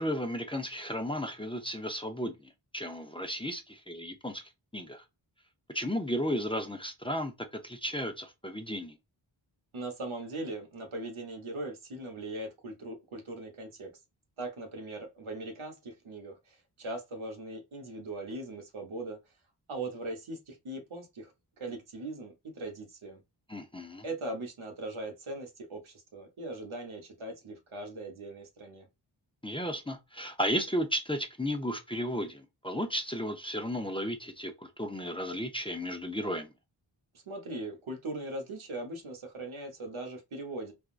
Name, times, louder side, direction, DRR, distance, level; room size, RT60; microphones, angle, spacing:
voice 1, 0.0-4.4 4.7-5.0 5.7-7.3 7.6-8.9 23.5-24.0 29.4-36.5, equal, 10° left, 0.6 m, -34 dB
voice 2, 9.7-13.9 14.4-19.2 19.7-21.3 21.6-23.2 24.0-28.9 37.3-40.7, right 2 dB, 85° right, 1.0 m, -40 dB
3.5 x 2.3 x 2.4 m
wide cardioid pair, 45°, 47 cm